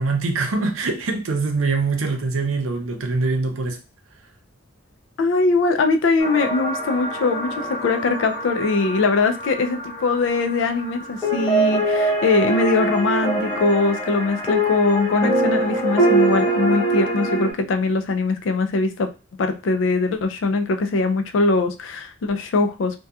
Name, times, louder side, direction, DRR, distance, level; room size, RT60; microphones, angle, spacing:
voice 1, 0.0-3.8, right 3 dB, 80° right, 4 dB, 0.5 m, -23 dB
voice 2, 5.2-19.1 19.4-23.0, left 3 dB, 65° left, 7 dB, 0.4 m, -21 dB
sound 1, 6.2-17.5, right 1 dB, 15° left, 0.7 m, -23 dB
2.7 x 2.2 x 2.3 m, 0.31 s
head